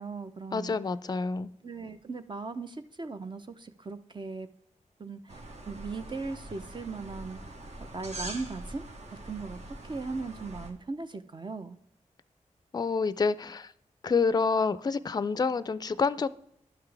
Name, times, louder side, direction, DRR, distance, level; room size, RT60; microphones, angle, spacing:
voice 1, 0.0-0.8 1.6-4.5 5.0-5.4 5.7-7.4 7.9-8.8 9.2-11.8, right 4 dB, 35° right, 9 dB, 0.6 m, -38 dB
voice 2, 0.5-1.5 12.7-13.7 14.0-16.3, left 4 dB, 30° left, 16 dB, 0.4 m, -28 dB
sound 1, 5.3-10.7, right 1 dB, 60° right, 1.2 m, -43 dB
11.0 x 5.8 x 3.3 m, 0.74 s
cardioid pair, 65°, 13 cm